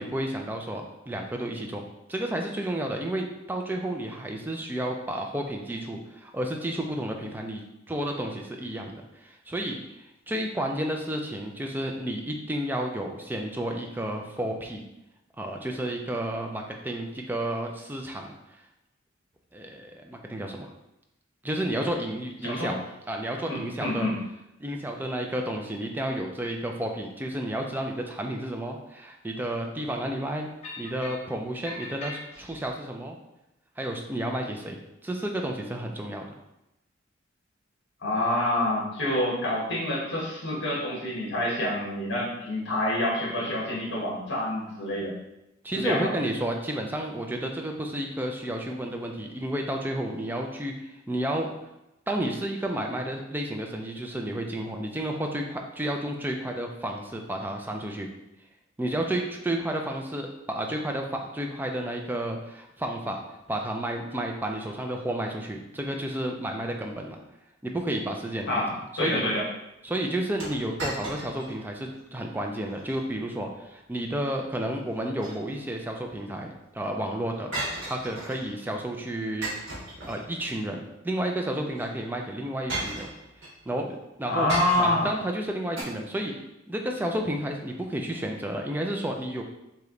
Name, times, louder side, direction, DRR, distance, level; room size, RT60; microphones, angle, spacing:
voice 1, 0.0-7.6 7.9-14.8 15.4-18.3 19.5-20.7 21.4-24.1 24.6-30.5 30.8-33.2 33.8-36.3 45.6-51.5 52.1-58.1 58.8-63.2 63.5-67.2 67.6-68.6 69.0-69.3 69.8-77.5 77.9-83.1 83.7-84.5 84.8-86.3 86.7-89.4, right 1 dB, 10° right, 2 dB, 0.3 m, -31 dB
voice 2, 23.5-24.1 38.0-45.1 45.7-46.1 68.5-69.5 84.3-85.1, left 1 dB, 60° left, -5 dB, 1.2 m, -27 dB
sound 1, 30.6-31.3 31.7-32.7, left 2 dB, 30° left, 1.0 m, -40 dB
sound 2, 70.4-71.6 71.9-72.0 72.7-73.0 74.9-75.8 77.5-78.5 79.4-80.6 81.7-81.9 82.7-83.5 84.5-85.1 85.8-85.9, right 2 dB, 75° right, 1.3 m, -35 dB
3.2 x 2.9 x 3.7 m, 0.91 s
head